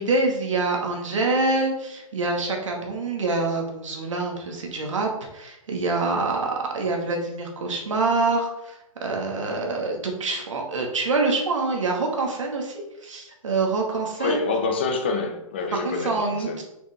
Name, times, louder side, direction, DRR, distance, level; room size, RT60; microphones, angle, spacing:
voice 1, 0.0-8.8 9.0-14.4 15.7-16.6, right 3 dB, 60° right, 0 dB, 2.0 m, -26 dB
voice 2, 14.2-16.6, left 4 dB, 20° left, 4 dB, 0.5 m, -27 dB
6.2 x 5.8 x 3.6 m, 0.90 s
hypercardioid pair, 180°, 18 cm